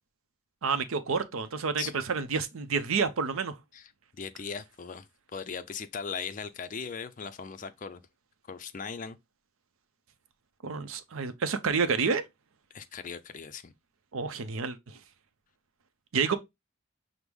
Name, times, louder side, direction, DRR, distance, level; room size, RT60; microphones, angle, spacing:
voice 1, 0.6-3.6 10.6-12.2 14.1-15.0 16.1-16.4, right 5 dB, 80° right, 0.6 m, -29 dB
voice 2, 4.1-5.1 5.3-8.0 8.5-9.2 12.7-13.7, left 6 dB, 40° left, 0.4 m, -38 dB
6.0 x 2.0 x 3.4 m
head